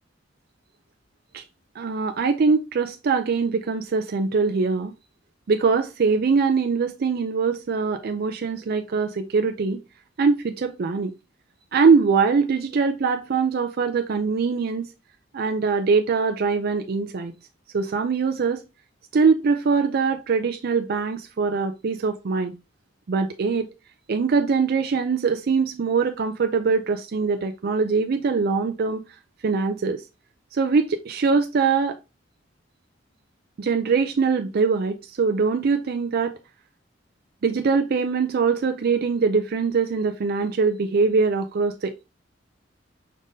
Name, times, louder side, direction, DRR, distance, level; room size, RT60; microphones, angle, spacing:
voice 1, 1.8-4.9 5.5-9.8 10.2-11.1 11.7-14.9 15.3-17.4 17.7-18.6 19.1-22.6 23.1-23.7 24.1-29.0 29.4-30.0 30.5-32.0 33.6-36.4 37.4-42.0, right 5 dB, 55° right, 0.4 m, -22 dB
5.1 x 3.6 x 2.7 m
head